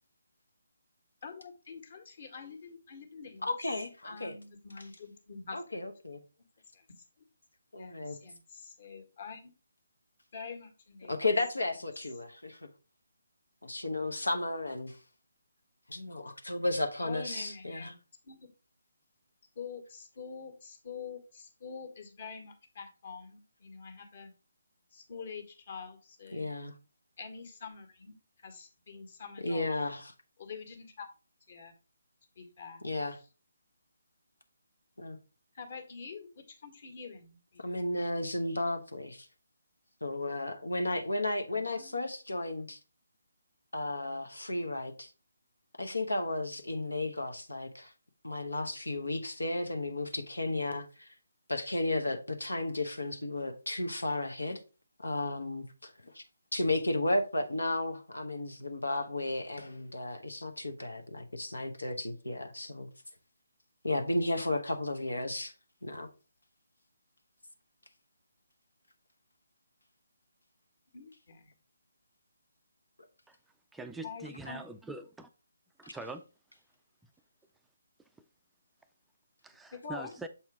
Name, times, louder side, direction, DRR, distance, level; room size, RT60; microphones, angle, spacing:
voice 1, 1.2-3.5 4.0-5.8 6.7-7.0 7.7-9.5 10.3-11.1 17.0-17.9 18.2-18.4 19.5-24.3 24.9-26.5 27.2-29.7 30.4-31.1 31.5-31.7 32.3-32.8 35.5-37.8 41.5-42.0 70.9-71.5 74.0-74.6 79.7-80.1, left 5 dB, 50° left, 1.6 m, -46 dB
voice 2, 3.4-4.3 5.5-6.2 7.7-8.2 11.1-12.7 13.6-15.0 15.9-17.9 26.3-26.7 29.4-30.1 32.8-33.2 35.0-35.2 37.6-39.3 40.0-42.8 43.7-45.1 45.8-47.9 48.2-51.1 51.5-54.6 55.0-56.2 56.5-62.9 63.8-65.5 65.8-66.1 75.8-75.9, left 2 dB, 90° left, 1.0 m, -33 dB
voice 3, 73.7-75.3 75.8-76.2 79.4-80.3, right 3 dB, 5° right, 0.3 m, -43 dB
7.0 x 4.4 x 3.5 m
figure-of-eight pair, 150°, 0 cm